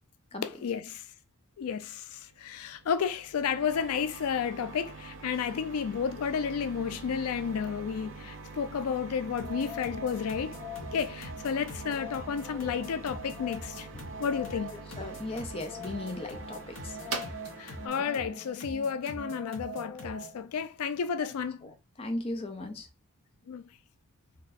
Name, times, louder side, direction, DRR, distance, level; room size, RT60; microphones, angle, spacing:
voice 1, 0.4-1.0 1.6-10.6 10.9-13.9 14.2-14.8 17.6-21.7 23.5-23.6, left 6 dB, 85° left, 0.4 m, -32 dB
sound 1, 2.0-19.6, right 3 dB, 85° right, 0.9 m, -46 dB
sound 2, 3.7-17.9, right 4 dB, 55° right, 0.7 m, -49 dB
sound 3, 9.4-20.5, left 1 dB, 60° left, 1.1 m, -42 dB
voice 2, 14.7-17.0 18.0-18.1 21.2-21.3 21.6-21.7 22.0-22.9, left 2 dB, 25° left, 0.5 m, -37 dB
4.0 x 2.7 x 2.5 m
head